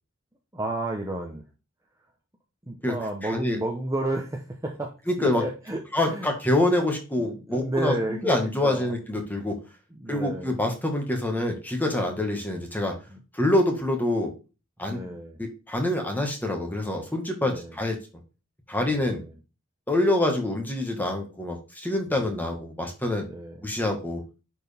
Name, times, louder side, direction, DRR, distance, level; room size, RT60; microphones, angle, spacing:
voice 1, 0.5-1.4 2.7-6.3 7.2-8.9 9.9-10.6 13.1-13.2 14.8-15.4 17.4-17.8 18.8-19.3 22.1-22.3 23.2-23.7, right 1 dB, 15° right, 0 dB, 1.0 m, -32 dB
voice 2, 5.1-5.4 5.9-9.6 10.1-12.9 13.3-14.3 14.8-18.0 18.7-19.2 19.9-23.3 23.6-24.2, left 1 dB, 10° left, 2 dB, 1.7 m, -26 dB
10.0 x 4.5 x 3.5 m, 0.31 s
head